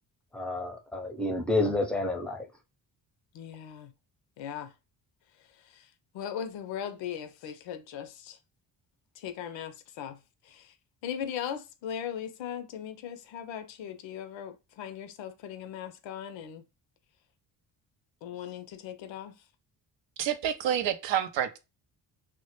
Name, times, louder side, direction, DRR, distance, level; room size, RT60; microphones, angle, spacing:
voice 1, 0.3-2.5, left 2 dB, ahead, 0.6 m, -29 dB
voice 2, 3.3-3.9 4.4-4.7 5.5-8.4 9.2-10.2 10.4-10.7 11.0-16.6 18.2-19.4, left 9 dB, 65° left, 0.5 m, -39 dB
voice 3, 20.2-21.6, right 10 dB, 65° right, 0.5 m, -28 dB
2.1 x 2.0 x 2.9 m
hypercardioid pair, 45°, 49 cm